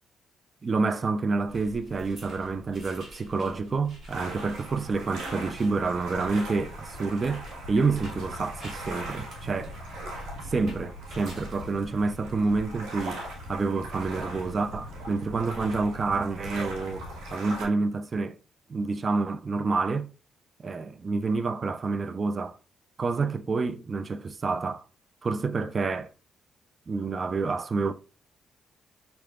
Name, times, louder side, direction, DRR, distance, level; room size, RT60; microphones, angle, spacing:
voice 1, 0.6-9.8 10.4-13.2 13.5-18.4 18.7-20.1 20.6-22.6 23.0-24.9 25.2-26.1 26.9-27.9, right 4 dB, 35° right, 0.3 m, -28 dB
sound 1, 1.5-13.0, right 1 dB, 55° right, 2.3 m, -48 dB
sound 2, 4.1-17.6, right 1 dB, 85° right, 1.5 m, -39 dB
5.8 x 3.3 x 2.4 m
cardioid pair, 90°, 0 cm